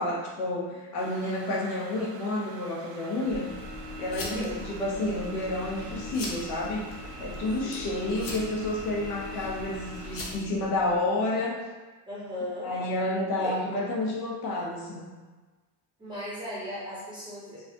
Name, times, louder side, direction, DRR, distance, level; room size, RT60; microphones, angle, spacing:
voice 1, 0.0-3.5 4.0-6.9 7.2-11.6 12.6-15.1, left 2 dB, 65° left, -3 dB, 1.0 m, -30 dB
sound 1, 1.0-10.2, right 5 dB, 80° right, 0.7 m, -47 dB
sound 2, 3.2-11.0, left 2 dB, 30° left, 0.5 m, -39 dB
voice 2, 4.2-4.6 7.6-7.8 9.3-9.5 12.1-12.7 13.4-13.8 16.0-17.6, left 1 dB, 10° right, -9 dB, 0.7 m, -37 dB
4.7 x 2.5 x 2.8 m, 1.3 s
cardioid pair, 180°, 46 cm